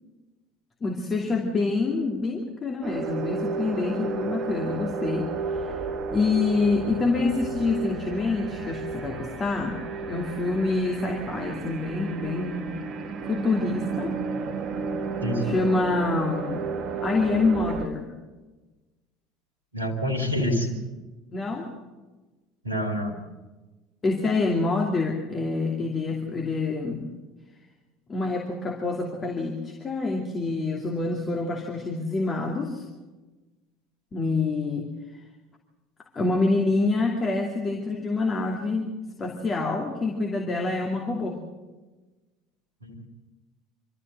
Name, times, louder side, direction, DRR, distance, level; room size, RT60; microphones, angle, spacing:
voice 1, 0.8-5.8 6.1-9.8 10.1-12.7 13.2-14.2 15.4-16.7 17.0-18.1 21.3-21.7 24.0-27.1 28.1-32.8 34.1-34.9 36.2-38.9 39.2-41.4, left 3 dB, 30° left, 0 dB, 2.6 m, -26 dB
sound 1, 2.8-17.9, right 4 dB, 45° right, 1.4 m, -32 dB
voice 2, 15.2-15.6 19.7-20.8 22.6-23.2 42.8-43.1, equal, 85° right, 4 dB, 2.2 m, -27 dB
25.0 x 14.0 x 7.9 m, 1.2 s
figure-of-eight pair, 65°, 0 cm